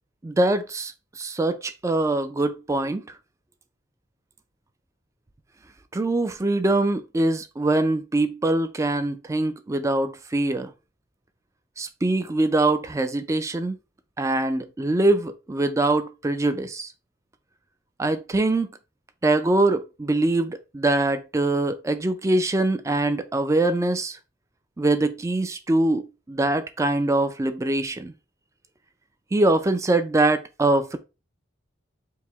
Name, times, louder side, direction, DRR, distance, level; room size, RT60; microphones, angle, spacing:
voice 1, 0.2-3.0 5.9-10.7 11.8-13.8 14.2-16.9 18.0-18.7 19.2-24.2 24.8-28.1 29.3-31.0, right 2 dB, 15° right, 0.3 m, -23 dB
4.6 x 2.1 x 3.4 m
head